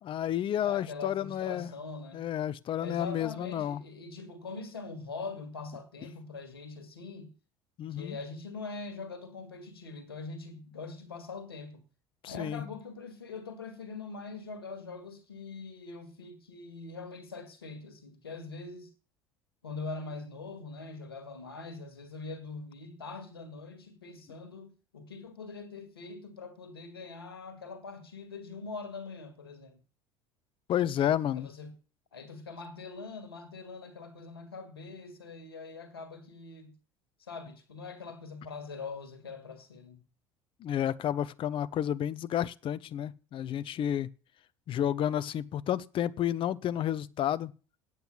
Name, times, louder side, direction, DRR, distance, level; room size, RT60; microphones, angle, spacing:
voice 1, 0.0-1.7 2.1-3.8 7.8-8.2 12.2-12.6 30.7-31.5 40.6-44.1 44.7-47.5, left 10 dB, 45° left, 0.8 m, -31 dB
voice 2, 0.6-2.3 2.8-7.3 7.9-11.8 12.2-18.9 19.6-29.8 31.3-31.7 32.1-36.7 37.2-40.0, left 4 dB, 85° left, 2.0 m, -43 dB
9.2 x 7.9 x 9.4 m
hypercardioid pair, 70°, 12 cm